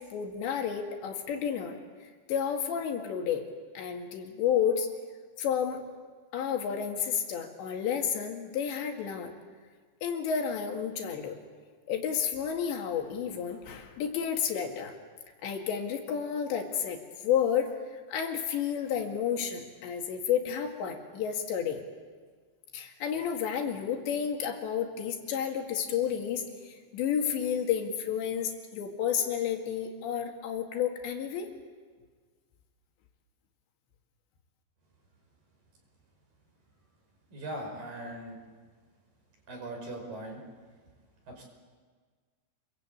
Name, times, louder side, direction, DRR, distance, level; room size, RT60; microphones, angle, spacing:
voice 1, 0.1-1.7 2.3-3.4 3.8-4.9 5.4-5.8 6.3-9.3 10.0-11.4 11.9-15.0 15.4-21.8 22.7-31.5, left 8 dB, 75° left, 3 dB, 4.3 m, -31 dB
voice 2, 37.3-38.4 39.5-40.4 41.3-41.4, right 1 dB, 50° right, 2 dB, 7.0 m, -39 dB
27.5 x 22.5 x 8.6 m, 1.5 s
omnidirectional pair, 5.1 m